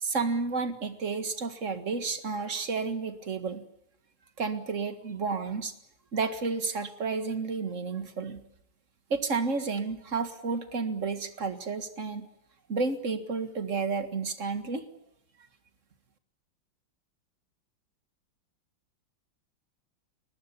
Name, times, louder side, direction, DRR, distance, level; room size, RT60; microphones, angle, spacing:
voice 1, 0.0-3.7 4.4-5.7 6.1-8.4 9.1-12.3 12.7-14.8, right 4 dB, 40° right, 9 dB, 2.1 m, -31 dB
22.0 x 20.0 x 9.9 m, 0.77 s
omnidirectional pair, 2.0 m